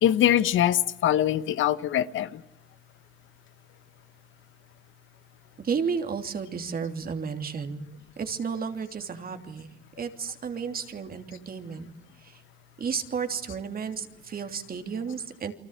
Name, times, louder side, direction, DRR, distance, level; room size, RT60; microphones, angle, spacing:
voice 1, 0.0-2.4, left 11 dB, 80° left, 14 dB, 1.2 m, -23 dB
voice 2, 5.6-7.9 8.2-9.7 10.0-11.9 12.2-12.4 12.8-15.5, right 6 dB, 50° right, 6 dB, 3.1 m, -32 dB
29.0 x 24.5 x 8.2 m, 0.87 s
cardioid pair, 90°, 20 cm